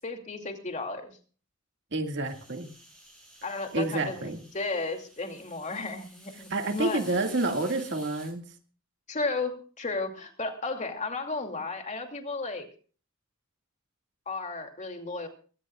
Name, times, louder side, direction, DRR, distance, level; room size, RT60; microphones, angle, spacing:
voice 1, 0.0-1.2 3.4-7.4 9.1-12.7 14.3-15.3, left 3 dB, 35° left, 4 dB, 2.6 m, -34 dB
voice 2, 1.9-2.7 3.7-4.4 6.5-8.4, right 2 dB, 55° right, 5 dB, 2.0 m, -29 dB
sound 1, 2.2-8.3, equal, ahead, 7.8 m, -52 dB
22.5 x 17.5 x 2.4 m, 0.40 s
head